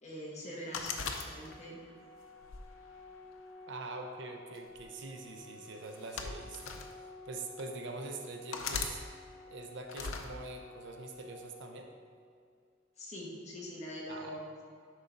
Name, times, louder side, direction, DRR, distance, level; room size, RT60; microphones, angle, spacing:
voice 1, 0.0-1.8 13.0-14.5, equal, 35° left, -5 dB, 1.6 m, -43 dB
sound 1, 0.7-1.8 2.4-3.6 4.6-4.8 5.8-6.9 7.6-7.7 8.5-9.0 9.9-10.3, left 5 dB, 85° left, 0.6 m, -39 dB
Organ, 1.4-12.4, left 2 dB, ahead, 1.4 m, -52 dB
voice 2, 3.7-9.0 9.5-11.9 14.1-14.3, right 3 dB, 60° right, 4 dB, 0.6 m, -44 dB
10.5 x 3.9 x 4.0 m, 2.3 s
head